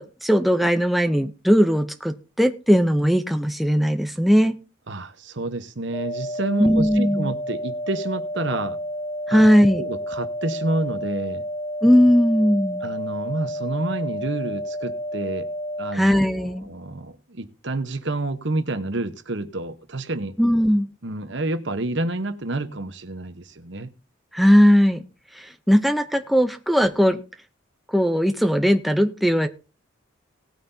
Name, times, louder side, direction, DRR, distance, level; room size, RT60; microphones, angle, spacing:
voice 1, 0.0-4.6 6.6-7.3 9.3-9.8 11.8-12.8 15.9-16.7 20.4-20.9 24.3-25.0 25.3-27.2 27.9-29.5, equal, ahead, 7 dB, 0.6 m, -18 dB
voice 2, 4.9-8.8 9.3-11.4 12.8-15.5 15.8-20.3 21.0-23.9, right 2 dB, 60° right, 10 dB, 1.0 m, -29 dB
sound 1, 5.9-15.9, equal, 20° left, 2.3 m, -31 dB
18.5 x 9.2 x 2.7 m, 0.32 s
head